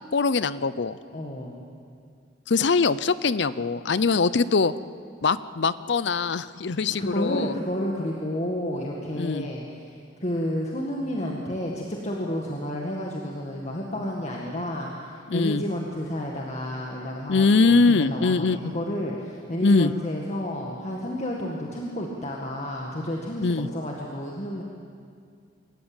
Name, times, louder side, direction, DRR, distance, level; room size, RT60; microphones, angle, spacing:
voice 1, 0.1-1.0 2.5-4.7 5.2-7.5 9.1-9.5 15.3-15.6 17.3-18.6 19.6-19.9 23.4-23.7, left 4 dB, 65° left, 16 dB, 0.6 m, -22 dB
voice 2, 1.1-1.6 6.7-9.9 10.2-24.6, left 1 dB, 40° left, -2 dB, 2.0 m, -31 dB
25.5 x 15.0 x 8.9 m, 2.3 s
head